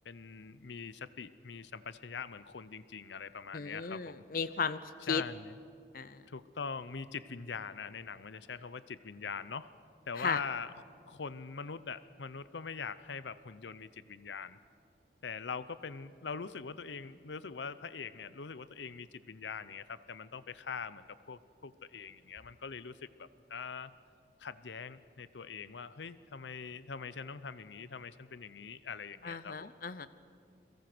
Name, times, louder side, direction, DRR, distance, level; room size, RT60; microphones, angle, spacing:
voice 1, 0.0-4.2 5.1-5.5 6.3-9.7 10.1-10.7 11.1-14.6 15.2-23.9 24.4-29.7, left 5 dB, 90° left, 15 dB, 0.7 m, -43 dB
voice 2, 3.5-4.8 5.1-5.2 5.9-6.2 10.2-10.4 29.2-30.1, left 5 dB, 55° left, 14 dB, 0.7 m, -35 dB
30.0 x 22.5 x 6.1 m, 2.3 s
head